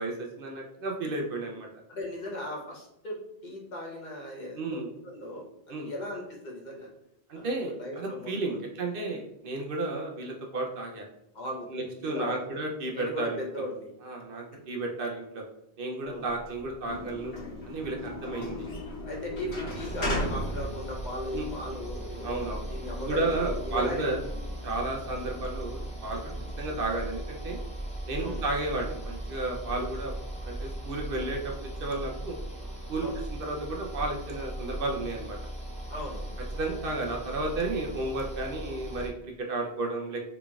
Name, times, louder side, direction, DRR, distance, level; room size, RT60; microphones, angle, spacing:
voice 1, 0.0-1.7 4.6-4.9 5.7-5.9 7.3-11.1 11.7-13.4 14.0-15.5 15.8-17.3 17.6-18.7 19.5-19.8 21.3-21.5 22.2-22.6 23.0-24.2 24.6-26.3 26.6-27.6 28.1-30.1 30.4-31.5 31.8-32.4 32.9-33.1 33.4-35.4 36.5-40.2, right 2 dB, 60° right, 1 dB, 0.7 m, -32 dB
voice 2, 1.9-6.9 7.3-8.6 11.3-12.4 12.9-13.9 16.0-16.3 19.0-23.2 23.5-24.1 28.2-28.4 33.0-33.2 35.9-36.4, left 1 dB, 45° left, -2 dB, 0.9 m, -38 dB
sound 1, 16.2-27.0, left 1 dB, 80° left, 1.3 m, -38 dB
sound 2, 19.7-39.1, right 1 dB, 5° left, 0.8 m, -38 dB
3.9 x 3.3 x 2.3 m, 0.86 s
omnidirectional pair, 1.1 m